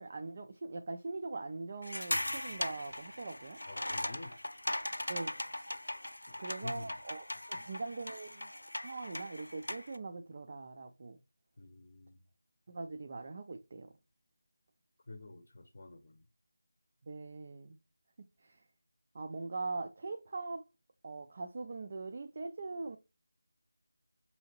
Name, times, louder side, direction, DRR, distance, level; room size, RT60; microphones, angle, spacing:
voice 1, 0.0-3.6 5.1-5.4 6.4-8.5 8.8-11.2 12.7-13.9 17.0-17.8 18.4-18.6 19.1-20.6 21.0-23.0, right 3 dB, 40° right, 0.4 m, -42 dB
sound 1, 1.8-10.0, left 1 dB, 90° left, 0.4 m, -39 dB
voice 2, 3.7-4.4 6.6-6.9 7.6-7.7 11.6-12.2 15.1-16.2, left 2 dB, 45° left, 0.7 m, -48 dB
5.5 x 2.8 x 2.9 m
figure-of-eight pair, 165°, 0 cm